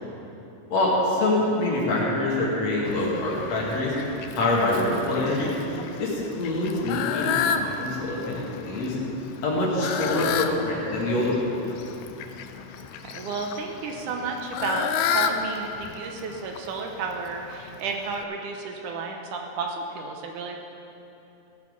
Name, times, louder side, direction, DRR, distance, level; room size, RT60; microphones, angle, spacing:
voice 1, 0.7-3.9 4.3-5.5 6.0-8.9 9.4-11.7, left 2 dB, 55° left, -4 dB, 3.0 m, -25 dB
Fowl, 2.8-18.2, left 7 dB, 85° left, 1.7 m, -32 dB
voice 2, 12.8-20.6, right 4 dB, 75° right, 2 dB, 2.3 m, -32 dB
16.0 x 7.4 x 6.5 m, 3.0 s
omnidirectional pair, 3.9 m